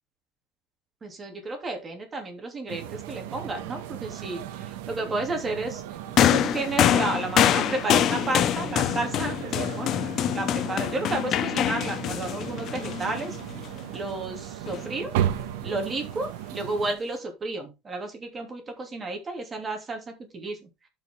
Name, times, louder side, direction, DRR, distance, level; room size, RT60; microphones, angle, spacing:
voice 1, 1.0-5.8 6.2-9.9 10.3-13.4 13.9-15.1 15.6-20.7, right 2 dB, 20° right, 4 dB, 3.0 m, -32 dB
sound 1, 2.7-16.9, right 11 dB, 80° right, 1.5 m, -35 dB
sound 2, 6.2-13.7 14.7-14.8, left 11 dB, 40° left, 0.7 m, -25 dB
12.5 x 5.6 x 3.7 m, 0.25 s
supercardioid pair, 135°, 0 cm